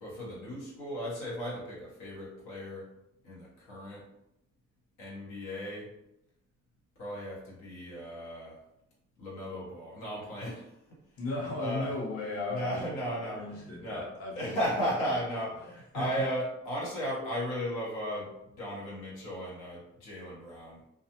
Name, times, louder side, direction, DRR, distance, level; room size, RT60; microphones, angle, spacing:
voice 1, 0.0-2.9 3.2-4.0 5.0-5.9 7.0-8.5 9.2-10.7 11.6-11.9 12.5-14.1 14.3-20.8, equal, 90° left, -5 dB, 1.1 m, -36 dB
voice 2, 11.2-14.9 15.6-15.7 15.9-16.3, left 2 dB, 50° left, -4 dB, 0.9 m, -36 dB
2.4 x 2.3 x 2.8 m, 0.85 s
cardioid pair, 90°, 30 cm